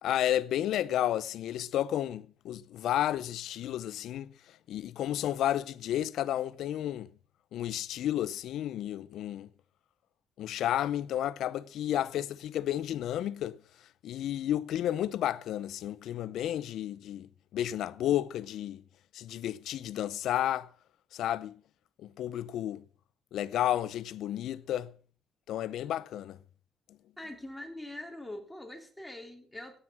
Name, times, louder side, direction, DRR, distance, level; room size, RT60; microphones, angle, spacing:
voice 1, 0.0-4.3 4.7-7.1 7.5-9.5 10.4-13.6 14.0-18.8 19.1-20.7 21.1-21.6 22.0-22.8 23.3-24.9 25.5-26.4, left 12 dB, 80° left, 0.6 m, -32 dB
voice 2, 27.2-29.8, left 1 dB, 5° left, 3.5 m, -43 dB
15.5 x 9.8 x 6.0 m
cardioid pair, 90°, 0 cm